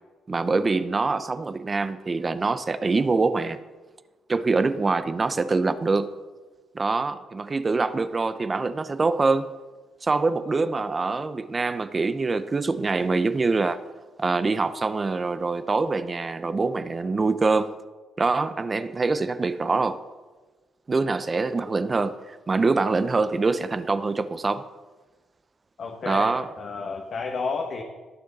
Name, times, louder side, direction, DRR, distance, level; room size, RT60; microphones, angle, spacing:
voice 1, 0.3-3.6 4.3-6.1 6.7-9.5 10.0-13.8 14.2-17.7 18.2-20.0 20.9-24.6 26.1-26.5, right 3 dB, 30° right, 0.6 m, -24 dB
voice 2, 25.8-27.8, left 4 dB, 55° left, 1.2 m, -31 dB
18.0 x 6.3 x 4.1 m
cardioid pair, 90°, 0 cm